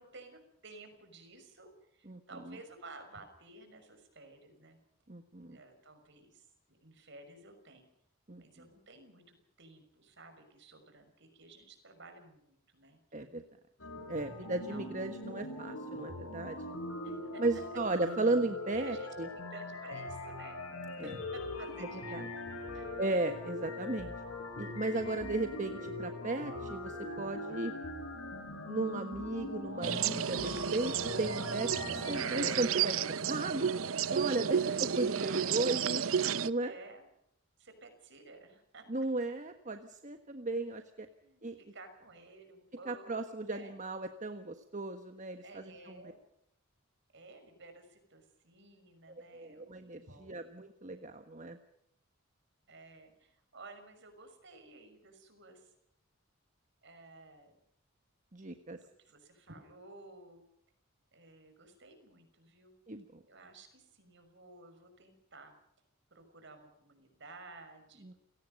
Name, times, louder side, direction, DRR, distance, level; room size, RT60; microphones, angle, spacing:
voice 1, 0.0-4.8 5.3-7.9 8.4-13.0 14.7-14.9 17.0-17.6 18.8-20.6 21.0-22.2 22.7-23.0 23.8-24.0 34.6-35.9 36.6-37.1 37.6-38.9 41.2-43.8 45.4-46.2 47.1-50.3 52.7-55.7 56.8-57.6 58.8-60.4 61.1-62.7 63.3-65.5 66.1-68.2, right 3 dB, 60° right, 7 dB, 6.1 m, -54 dB
voice 2, 5.1-5.6 8.3-8.4 13.1-13.4 14.1-16.6 17.4-19.3 21.0-21.1 22.1-22.2 23.0-24.1 24.6-27.7 28.7-33.7 34.1-36.0 36.4-36.7 38.9-41.1 41.4-41.6 42.9-45.9 49.3-51.6 58.3-58.8 62.9-63.2 68.0-68.1, right 2 dB, 35° right, 7 dB, 1.4 m, -35 dB
sound 1, 13.8-32.6, left 2 dB, 80° left, 7.1 m, -41 dB
sound 2, 29.8-36.5, right 7 dB, 80° right, 0.8 m, -32 dB
30.0 x 18.0 x 5.4 m, 0.77 s
head